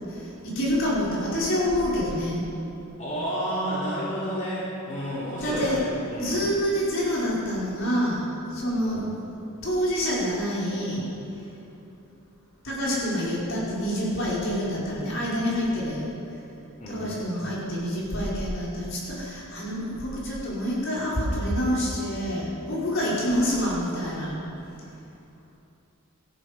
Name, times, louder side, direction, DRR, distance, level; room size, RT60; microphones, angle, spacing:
voice 1, 0.5-2.4 5.4-5.8 6.2-9.0 9.6-11.0 12.6-16.1 16.9-24.4, equal, 60° left, -6 dB, 4.9 m, -27 dB
voice 2, 3.0-6.4 8.8-9.2 16.8-17.4, equal, 35° left, -9 dB, 3.3 m, -31 dB
18.5 x 14.0 x 5.2 m, 2.8 s
head